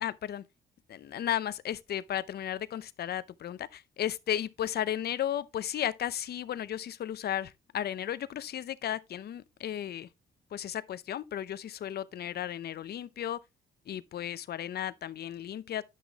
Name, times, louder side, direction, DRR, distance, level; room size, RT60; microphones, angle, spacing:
voice 1, 0.0-0.4 0.9-10.1 10.5-13.4 13.9-15.8, left 10 dB, 55° left, 0.6 m, -34 dB
10.0 x 6.2 x 2.9 m
cardioid pair, 90°, 20 cm